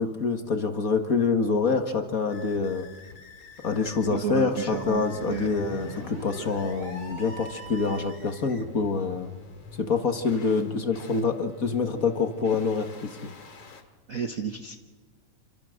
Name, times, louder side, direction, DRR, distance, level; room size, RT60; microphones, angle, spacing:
voice 1, 0.0-2.9 3.6-9.3 9.8-13.3, left 4 dB, 40° left, 6 dB, 1.4 m, -26 dB
sound 1, 2.3-13.8, left 4 dB, 55° left, 3.5 m, -47 dB
voice 2, 4.1-5.5 14.1-14.8, right 7 dB, 70° right, 5 dB, 0.7 m, -31 dB
sound 2, 4.5-8.3, right 2 dB, 55° right, 7.6 m, -41 dB
27.5 x 25.5 x 6.5 m, 1.4 s
omnidirectional pair, 3.3 m